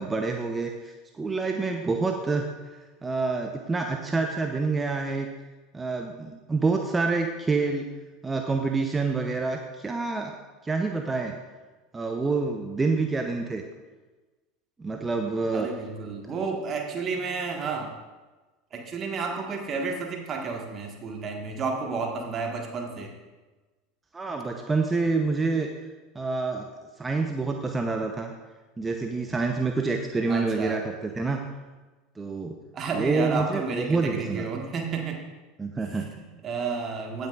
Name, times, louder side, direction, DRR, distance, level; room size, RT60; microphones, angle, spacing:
voice 1, 0.0-2.5 3.0-5.3 5.7-7.9 8.2-10.3 10.6-11.4 11.9-13.6 14.8-15.7 24.1-25.7 26.1-26.7 27.0-28.3 28.8-31.4 32.2-32.6 32.9-34.5 35.6-36.1, right 3 dB, 15° right, 3 dB, 0.8 m, -27 dB
voice 2, 15.5-17.9 18.7-23.1 30.3-30.8 32.7-35.2 35.9-37.3, right 4 dB, 35° right, 1 dB, 1.6 m, -31 dB
16.0 x 9.0 x 2.5 m, 1.2 s
figure-of-eight pair, 75°, 0 cm